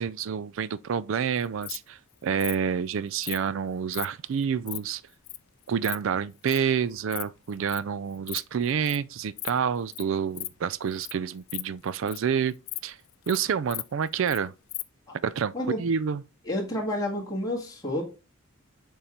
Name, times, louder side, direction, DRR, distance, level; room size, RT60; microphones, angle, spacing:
voice 1, 0.0-5.0 5.7-12.6 12.8-13.0 13.3-14.5 15.2-16.2, right 7 dB, 65° right, 0.4 m, -28 dB
Insect, 1.4-1.8 2.4-2.6 3.2-3.4 3.9-4.1 4.4-4.8 5.3-5.4 5.6-6.0 6.5-6.6 7.0-7.2 7.5-7.8 8.1-8.4 8.6-9.0 9.4-9.6 9.9-10.0 10.3-10.5 10.9-11.1 11.4-12.3 12.7-12.8 13.1-13.4 13.7-14.4 14.7-14.8, left 20 dB, 75° left, 0.4 m, -36 dB
voice 2, 16.5-18.0, left 1 dB, 15° left, 1.7 m, -30 dB
7.0 x 3.8 x 4.3 m
head